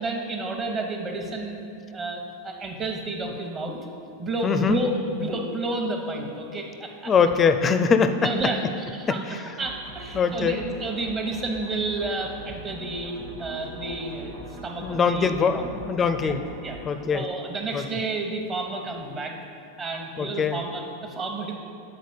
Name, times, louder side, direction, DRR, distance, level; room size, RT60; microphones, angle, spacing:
voice 1, 0.0-3.8 4.2-7.1 8.2-9.2 9.6-15.7 16.2-16.3 16.6-16.8 17.1-19.4 19.8-21.6, right 2 dB, 25° right, 2 dB, 1.0 m, -31 dB
voice 2, 4.4-4.8 7.1-8.3 9.1-9.5 10.1-10.6 14.8-16.4 16.8-17.2 17.7-17.8 20.2-20.6, left 5 dB, 25° left, 8 dB, 0.4 m, -22 dB
sound 1, 9.6-16.9, right 2 dB, 60° right, 1.3 m, -42 dB
7.9 x 3.9 x 5.0 m, 2.4 s
figure-of-eight pair, 90°, 0 cm